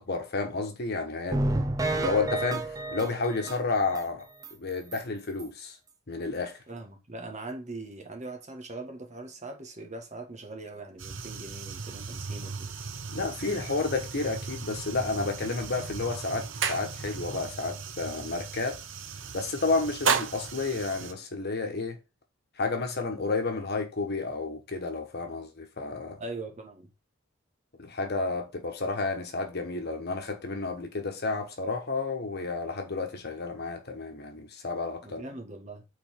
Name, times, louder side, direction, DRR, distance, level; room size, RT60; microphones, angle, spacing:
voice 1, 0.0-1.4 1.9-4.3 4.5-5.8 6.1-6.6 13.1-18.8 19.3-22.0 22.6-26.2 27.8-35.2, left 3 dB, 55° left, 1.3 m, -31 dB
sound 1, 1.3-4.0 4.4-4.5 4.9-5.0 5.4-5.5, right 2 dB, 20° right, 0.5 m, -30 dB
voice 2, 6.7-12.7 26.2-26.9 35.0-35.8, right 2 dB, 35° right, 1.5 m, -41 dB
sound 2, 11.0-21.1, right 5 dB, 70° right, 0.9 m, -35 dB
5.3 x 4.1 x 4.4 m
head